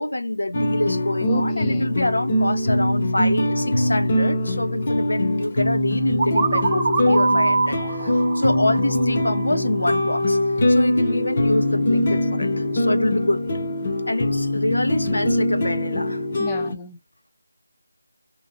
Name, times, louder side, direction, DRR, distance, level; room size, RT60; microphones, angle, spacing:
voice 1, 0.0-10.4 10.7-13.4 14.1-16.3, left 1 dB, 85° left, 0.7 m, -26 dB
sound 1, 0.5-16.7, left 1 dB, 35° left, 0.9 m, -22 dB
voice 2, 1.2-1.9 11.9-12.1 16.4-17.0, left 8 dB, 15° left, 0.4 m, -33 dB
sound 2, 6.2-9.9, right 3 dB, 25° right, 0.8 m, -24 dB
3.0 x 2.7 x 2.5 m
figure-of-eight pair, 165°, 0 cm